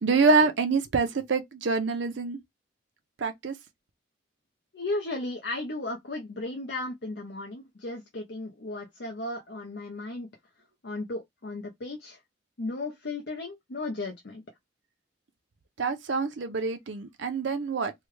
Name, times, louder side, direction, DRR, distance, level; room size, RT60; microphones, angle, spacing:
voice 1, 0.0-2.4 3.2-3.5 15.8-17.9, right 4 dB, 80° right, 0.5 m, -26 dB
voice 2, 4.7-10.3 10.8-12.2 12.6-14.4, left 2 dB, 65° left, 0.7 m, -35 dB
3.2 x 2.2 x 3.1 m
head